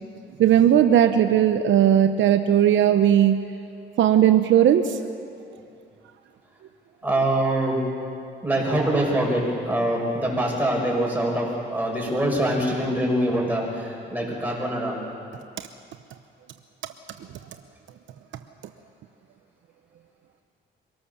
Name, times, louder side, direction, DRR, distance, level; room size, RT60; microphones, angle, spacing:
voice 1, 0.4-3.4 4.0-4.9, right 10 dB, 75° right, 8 dB, 0.9 m, -17 dB
voice 2, 7.0-7.8 8.4-14.9, right 1 dB, 10° right, -2 dB, 7.0 m, -24 dB
25.0 x 18.5 x 7.2 m, 2.4 s
cardioid pair, 90°, 20 cm